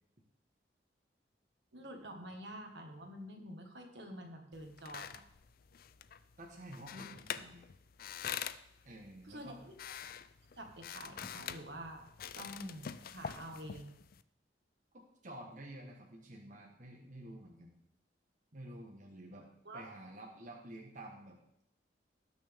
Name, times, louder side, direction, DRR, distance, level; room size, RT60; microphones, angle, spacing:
voice 1, 1.7-5.2 6.9-7.0 9.2-9.7 10.6-12.1 12.3-13.9 19.6-19.9, right 1 dB, 70° right, 3 dB, 1.7 m, -47 dB
creaky chair, 4.5-14.2, left 8 dB, 55° left, 0.4 m, -46 dB
voice 2, 6.4-7.7 8.8-9.6 14.9-17.8 18.5-19.5 19.7-21.4, right 1 dB, 45° right, 0 dB, 1.3 m, -50 dB
18.5 x 6.3 x 3.5 m, 0.76 s
head